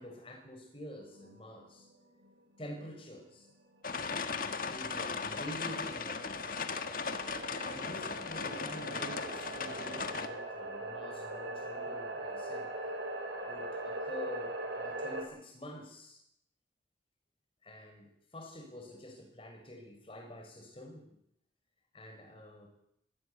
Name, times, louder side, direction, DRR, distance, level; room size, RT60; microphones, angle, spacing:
voice 1, 0.0-1.9 2.6-3.5 4.6-6.6 7.5-12.7 13.4-16.2 17.6-21.2 21.9-22.7, left 1 dB, 30° left, 3 dB, 6.0 m, -47 dB
sound 1, 0.9-3.5 3.9-4.0 4.7-15.2, right 1 dB, 90° right, 5.5 m, -42 dB
sound 2, 3.8-10.3, left 5 dB, 50° left, 1.7 m, -37 dB
21.5 x 15.5 x 8.2 m, 0.75 s
head